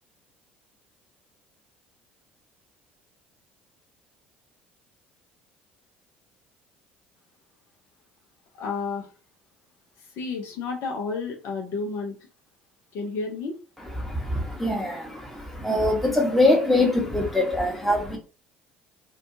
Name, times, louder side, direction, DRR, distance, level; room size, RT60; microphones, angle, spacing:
voice 1, 8.5-9.1 10.2-12.2 12.9-13.6, left 4 dB, 55° left, 0.6 m, -31 dB
voice 2, 14.0-18.2, left 1 dB, 5° left, 1.0 m, -23 dB
2.6 x 2.3 x 2.6 m
figure-of-eight pair, 55°, 5 cm